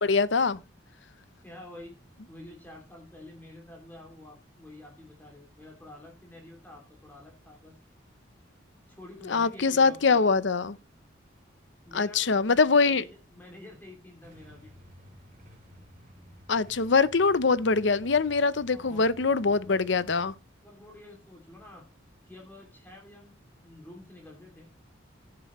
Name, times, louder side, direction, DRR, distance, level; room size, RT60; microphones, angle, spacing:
voice 1, 0.0-0.6 9.2-10.8 11.9-13.0 16.5-20.3, left 4 dB, 65° left, 0.7 m, -23 dB
voice 2, 1.4-1.9 2.3-7.7 8.9-10.2 11.8-14.7 18.7-20.1 20.6-21.8 22.2-24.7, left 1 dB, 10° left, 2.6 m, -49 dB
Motorcycle / Engine starting / Idling, 14.2-20.4, equal, 45° right, 3.3 m, -53 dB
16.5 x 7.7 x 3.1 m
head